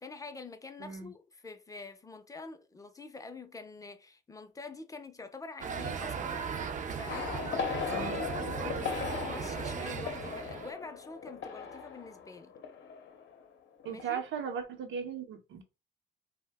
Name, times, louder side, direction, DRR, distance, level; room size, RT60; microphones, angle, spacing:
voice 1, 0.0-12.5 13.9-14.2, left 3 dB, 15° left, 0.5 m, -46 dB
voice 2, 0.8-1.1 7.9-8.2 13.8-15.6, right 7 dB, 75° right, 0.7 m, -38 dB
sound 1, 5.6-10.7, right 6 dB, 40° right, 0.4 m, -37 dB
sound 2, 7.1-13.5 13.8-14.1, left 6 dB, 65° left, 0.7 m, -38 dB
2.6 x 2.1 x 3.4 m
cardioid pair, 90°, 20 cm